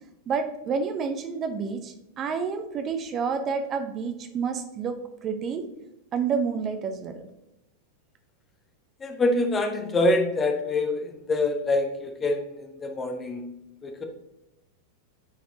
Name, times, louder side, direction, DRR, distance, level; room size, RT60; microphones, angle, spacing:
voice 1, 0.3-5.7 6.1-7.2, right 5 dB, 30° right, 7 dB, 0.8 m, -29 dB
voice 2, 9.0-12.4 12.8-13.5 13.8-14.0, left 2 dB, 20° left, 4 dB, 1.1 m, -25 dB
13.0 x 4.4 x 2.8 m, 0.92 s
figure-of-eight pair, 90°, 0 cm